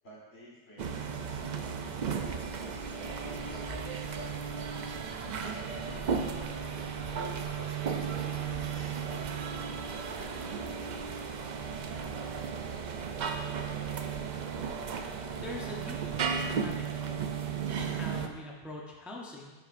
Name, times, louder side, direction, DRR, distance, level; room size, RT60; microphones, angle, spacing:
voice 1, 0.0-3.9 4.2-4.6 5.2-6.0 6.3-9.0, left 1 dB, 75° left, -3 dB, 1.9 m, -53 dB
sound 1, 0.8-18.3, right 6 dB, 55° right, 0.6 m, -35 dB
sound 2, 3.4-5.3 5.8-7.7 8.2-9.9, left 2 dB, 30° left, 1.0 m, -50 dB
sound 3, 4.2-18.3, left 1 dB, 50° left, 2.3 m, -54 dB
voice 2, 15.4-17.2 17.8-19.5, left 1 dB, ahead, -2 dB, 0.7 m, -43 dB
10.0 x 6.1 x 2.5 m, 1.3 s
omnidirectional pair, 1.1 m